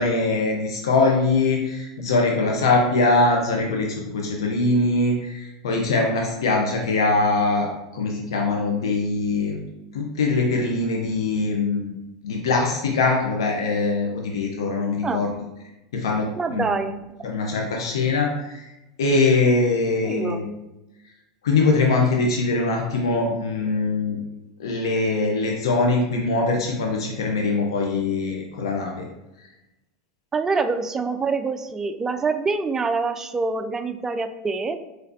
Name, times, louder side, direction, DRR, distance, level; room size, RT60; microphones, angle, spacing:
voice 1, 0.0-9.7 9.9-11.9 12.2-15.3 15.9-16.6 17.2-18.7 19.0-20.5 21.4-24.2 24.6-29.0, left 3 dB, 80° left, 0 dB, 0.6 m, -22 dB
voice 2, 16.4-17.0 20.0-20.4 30.3-34.8, right 4 dB, 20° right, 9 dB, 0.3 m, -25 dB
4.0 x 3.2 x 2.6 m, 0.98 s
hypercardioid pair, 90°, 2 cm